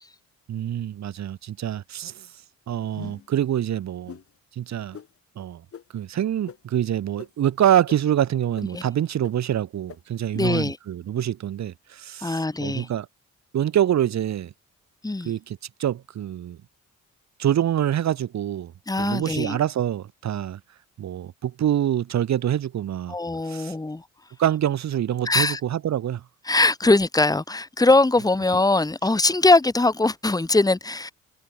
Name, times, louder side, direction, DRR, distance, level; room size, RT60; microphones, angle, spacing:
voice 1, 0.5-2.3 2.7-4.2 4.6-5.0 5.4-5.6 5.9-13.1 13.5-14.5 15.2-16.6 17.4-18.7 19.0-20.6 21.0-23.1 23.5-23.7 24.4-26.2, right 11 dB, 65° right, 2.5 m, -25 dB
sound 1, 2.9-3.4 4.1-4.2 4.9-5.1 5.7-5.8 6.5-6.6 7.2-7.3 7.9-8.0 8.6-8.7 9.2-9.3 9.9-10.0, left 8 dB, 50° left, 2.2 m, -40 dB
voice 2, 10.3-10.8 12.2-12.9 15.0-15.3 18.9-19.6 23.1-24.0 25.2-25.6 26.5-31.1, left 2 dB, 10° left, 2.0 m, -21 dB
cardioid pair, 90°, 30 cm